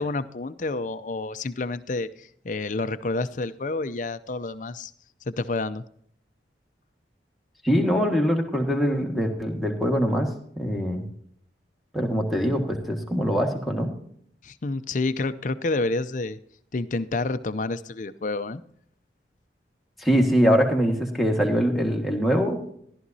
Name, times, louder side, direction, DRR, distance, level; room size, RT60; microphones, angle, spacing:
voice 1, 0.0-4.9 5.3-5.8 14.4-16.4 16.7-18.6, left 3 dB, 45° left, 12 dB, 0.5 m, -29 dB
voice 2, 7.6-11.0 11.9-13.9 20.0-22.6, equal, ahead, 1 dB, 1.5 m, -23 dB
14.5 x 12.0 x 2.7 m, 0.66 s
head